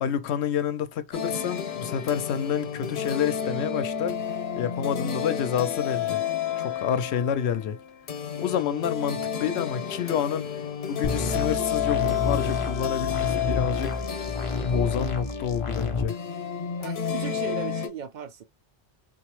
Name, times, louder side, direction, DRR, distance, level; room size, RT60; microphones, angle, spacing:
voice 1, 0.0-4.2 4.6-6.2 6.5-7.8 8.4-10.5 10.9-14.0 14.6-16.1, left 8 dB, 85° left, 0.9 m, -28 dB
sound 1, 1.1-17.9, left 8 dB, 60° left, 0.9 m, -31 dB
sound 2, 11.0-16.0, left 3 dB, 40° left, 0.5 m, -30 dB
voice 2, 16.8-18.4, right 8 dB, 55° right, 0.6 m, -37 dB
4.0 x 2.0 x 3.0 m
omnidirectional pair, 1.1 m